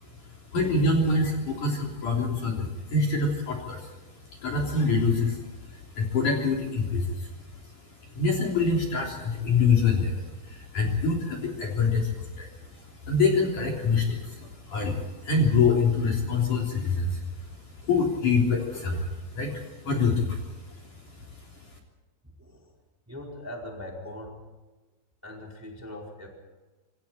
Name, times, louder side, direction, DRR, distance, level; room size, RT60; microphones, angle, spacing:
voice 1, 0.5-3.9 4.3-7.6 8.1-20.9 21.3-21.4, left 4 dB, 45° left, -1 dB, 4.5 m, -26 dB
voice 2, 22.4-22.7 23.1-24.5 25.2-26.3, left 1 dB, 5° right, -1 dB, 4.1 m, -41 dB
27.5 x 26.5 x 4.5 m, 1.2 s
omnidirectional pair, 5.6 m